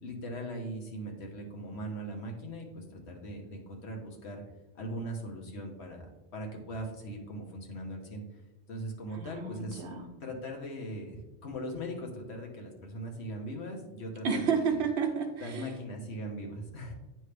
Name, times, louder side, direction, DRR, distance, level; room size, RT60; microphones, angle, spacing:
voice 1, 0.0-4.4 4.7-6.1 6.3-8.2 8.7-9.8 10.2-14.5 15.4-16.9, equal, 70° left, 1 dB, 1.3 m, -40 dB
voice 2, 9.1-10.0 14.2-15.6, right 5 dB, 75° right, 4 dB, 1.1 m, -31 dB
8.9 x 3.4 x 3.3 m, 1.0 s
omnidirectional pair, 1.2 m